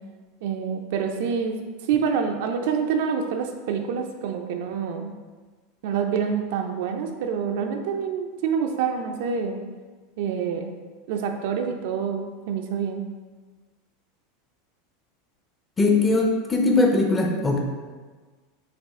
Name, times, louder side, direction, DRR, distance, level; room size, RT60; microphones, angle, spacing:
voice 1, 0.4-1.6 1.9-5.1 5.8-9.6 10.2-10.7 11.1-13.0, right 6 dB, 60° right, 4 dB, 0.4 m, -27 dB
voice 2, 15.8-17.6, left 3 dB, 15° left, 1 dB, 0.5 m, -20 dB
5.8 x 2.4 x 3.6 m, 1.4 s
supercardioid pair, 165°, 0 cm